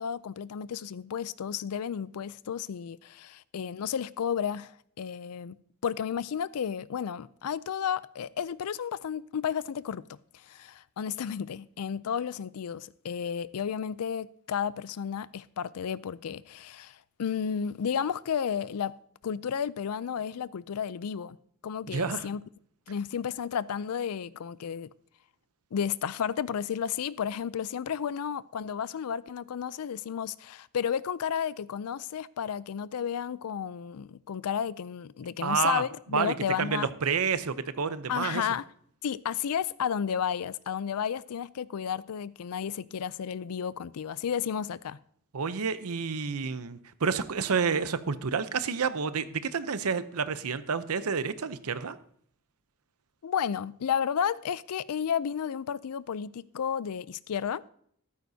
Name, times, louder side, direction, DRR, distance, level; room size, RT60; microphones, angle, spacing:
voice 1, 0.0-5.6 5.8-18.9 19.2-21.4 21.6-22.4 22.9-24.9 25.7-36.9 38.1-38.6 39.0-45.0 53.2-57.6, left 8 dB, 80° left, 0.4 m, -32 dB
voice 2, 21.9-22.3 35.4-35.8 36.1-38.5 45.3-52.0, right 5 dB, 75° right, 0.7 m, -29 dB
14.0 x 12.0 x 2.8 m
head